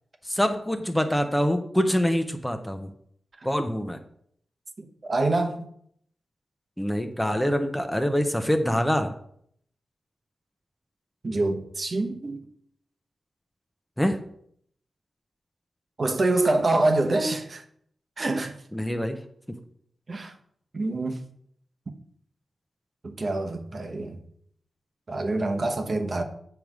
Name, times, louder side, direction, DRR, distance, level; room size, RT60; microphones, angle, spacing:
voice 1, 0.3-2.9 3.4-4.0 6.8-9.1 14.0-14.2 18.7-19.2, equal, 5° left, 0.8 m, -25 dB
voice 2, 4.8-5.6 11.2-12.4 16.0-17.6 18.2-18.5 20.1-20.3 20.7-21.2 23.0-24.2 25.1-26.2, right 2 dB, 50° right, 1.0 m, -26 dB
7.7 x 3.5 x 6.0 m
cardioid pair, 70°, 0 cm